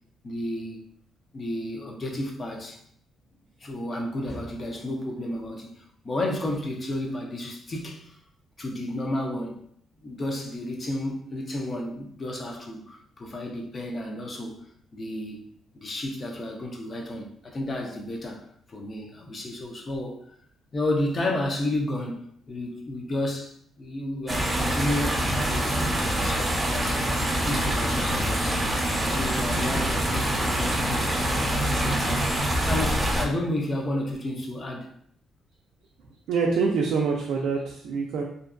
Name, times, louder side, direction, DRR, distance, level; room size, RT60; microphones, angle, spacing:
voice 1, 0.2-0.8 1.3-2.8 3.6-5.7 6.0-8.2 8.6-9.6 10.0-14.6 14.9-15.4 15.7-20.2 20.7-23.5 23.8-28.6 29.0-31.1 31.5-32.3 32.7-34.9, left 1 dB, 35° left, 1 dB, 0.6 m, -32 dB
sound 1, 24.3-33.3, right 1 dB, 20° right, 0.5 m, -25 dB
voice 2, 36.3-38.2, right 5 dB, 80° right, -1 dB, 0.3 m, -25 dB
2.5 x 2.2 x 2.4 m, 0.66 s
cardioid pair, 90°, 0 cm